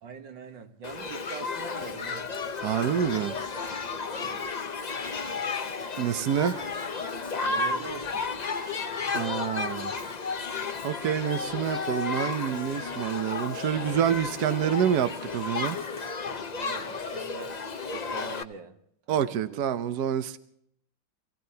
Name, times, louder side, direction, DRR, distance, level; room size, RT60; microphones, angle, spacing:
voice 1, 0.0-2.4 4.1-4.4 7.4-8.3 16.6-17.6 17.9-18.8 19.1-19.6, right 5 dB, 80° right, 2.1 m, -43 dB
Shout / Human group actions, 0.8-18.4, left 4 dB, 55° left, 0.4 m, -33 dB
voice 2, 2.6-3.4 6.0-6.7 9.1-9.9 10.8-15.8 19.1-20.4, right 9 dB, 65° right, 1.3 m, -27 dB
27.5 x 17.0 x 2.8 m
omnidirectional pair, 2.0 m